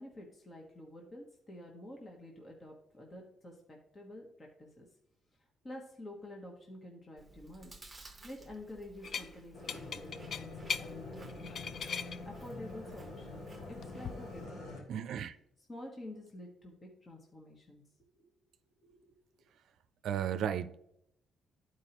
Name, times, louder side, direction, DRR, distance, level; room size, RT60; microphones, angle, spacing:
voice 1, 0.0-4.9 5.6-7.7 8.2-11.7 12.2-14.8 15.6-17.8 18.1-18.3 18.8-19.1, left 1 dB, 30° left, 1.4 m, -49 dB
Chewing mastication, 7.2-14.5, right 3 dB, 15° right, 1.2 m, -56 dB
sound 1, 9.0-9.3 9.7-10.9 11.3-12.2 13.6-14.1, left 6 dB, 55° left, 0.4 m, -38 dB
sound 2, 9.5-14.8, left 3 dB, 75° left, 2.8 m, -46 dB
voice 2, 14.9-15.4 20.0-20.7, right 9 dB, 75° right, 0.4 m, -34 dB
12.0 x 4.7 x 2.9 m
cardioid pair, 90°, 0 cm